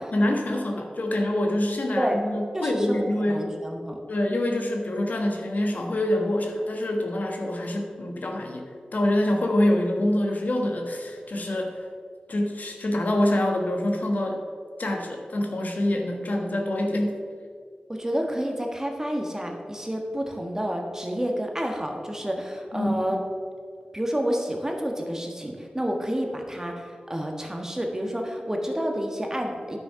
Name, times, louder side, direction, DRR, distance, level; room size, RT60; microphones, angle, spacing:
voice 1, 0.0-3.6 4.1-11.8 12.3-14.4 14.8-17.2 22.7-22.9, left 1 dB, 65° left, 2 dB, 1.3 m, -26 dB
voice 2, 2.5-4.0 17.9-23.2 23.9-29.8, equal, 20° right, 2 dB, 1.4 m, -29 dB
10.0 x 6.2 x 5.7 m, 2.1 s
wide cardioid pair, 70°, 3 cm